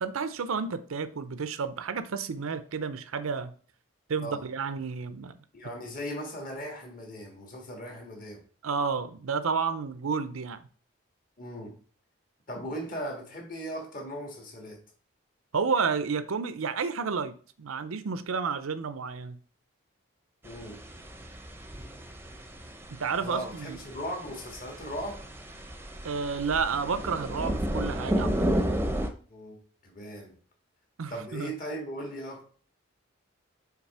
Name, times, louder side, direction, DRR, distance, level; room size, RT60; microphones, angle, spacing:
voice 1, 0.0-3.5 4.1-5.3 8.6-10.7 15.5-19.4 22.9-23.8 26.0-28.5 31.0-31.5, right 5 dB, 90° right, 0.6 m, -31 dB
voice 2, 5.5-8.4 11.4-11.7 12.5-14.8 20.4-20.8 23.2-25.2 29.3-29.6 29.8-30.4 31.1-32.4, equal, 40° left, 1.8 m, -38 dB
sound 1, 20.4-29.1, equal, 10° right, 0.6 m, -33 dB
5.9 x 4.1 x 4.2 m
head